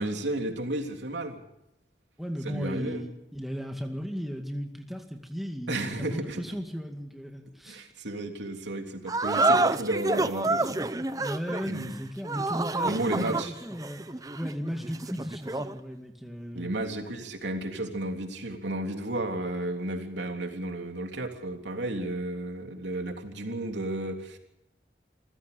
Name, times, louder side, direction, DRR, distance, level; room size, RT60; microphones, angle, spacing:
voice 1, 0.0-1.4 2.4-3.0 5.7-6.6 7.7-10.8 11.7-11.9 12.8-13.5 16.5-24.4, right 1 dB, 90° right, 4 dB, 3.4 m, -33 dB
voice 2, 2.2-7.9 11.2-14.0 14.4-16.7, equal, ahead, 3 dB, 2.1 m, -36 dB
sound 1, 9.1-15.8, right 2 dB, 20° right, 0.8 m, -28 dB
27.5 x 15.5 x 7.0 m, 0.85 s
head